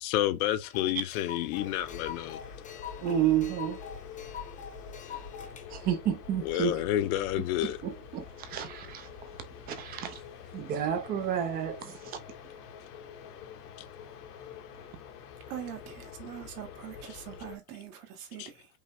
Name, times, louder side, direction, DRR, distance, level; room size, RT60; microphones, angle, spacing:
voice 1, 0.0-2.4 6.4-7.8 18.4-18.5, left 13 dB, 65° left, 0.8 m, -29 dB
sound 1, 0.6-5.7, left 8 dB, 15° left, 0.7 m, -45 dB
sound 2, 1.5-17.6, left 6 dB, 85° left, 1.4 m, -46 dB
voice 2, 3.0-3.8 5.7-6.8 7.8-9.1 9.7-10.1 10.5-12.0, right 9 dB, 25° right, 0.3 m, -30 dB
voice 3, 15.5-18.7, right 10 dB, 75° right, 1.7 m, -43 dB
5.2 x 2.1 x 3.4 m
supercardioid pair, 145°, 45 cm